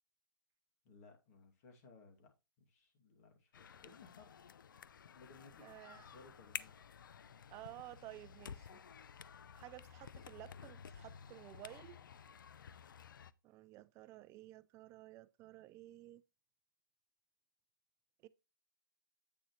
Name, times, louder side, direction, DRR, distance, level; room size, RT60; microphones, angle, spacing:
voice 1, 0.8-2.3 2.6-4.3 5.1-6.8, left 4 dB, 50° left, 2.4 m, -61 dB
sound 1, 3.5-13.3, left 7 dB, 75° left, 0.5 m, -53 dB
voice 2, 5.6-6.0 7.5-8.8 9.6-12.0 13.4-16.2 18.2-18.3, right 16 dB, 25° right, 0.5 m, -54 dB
8.8 x 6.3 x 3.1 m
hypercardioid pair, 125°, 11 cm